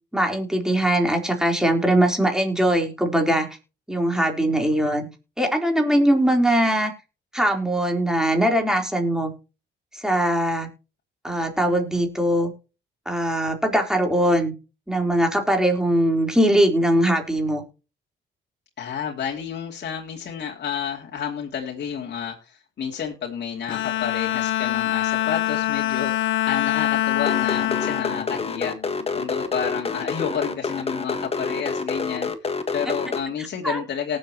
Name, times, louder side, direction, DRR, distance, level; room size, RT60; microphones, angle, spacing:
voice 1, 0.1-3.5 3.9-5.1 5.4-6.9 7.3-9.3 9.9-10.7 11.2-12.5 13.1-14.5 14.9-17.6 33.6-33.8, right 1 dB, 5° right, 2 dB, 3.9 m, -21 dB
voice 2, 18.8-28.7 29.1-34.2, left 7 dB, 60° left, -2 dB, 2.9 m, -30 dB
Bowed string instrument, 23.7-29.2, left 13 dB, 75° left, 1.0 m, -25 dB
sound 1, 27.3-33.2, left 4 dB, 30° left, 1.6 m, -27 dB
18.5 x 7.8 x 3.0 m, 0.32 s
cardioid pair, 90°, 20 cm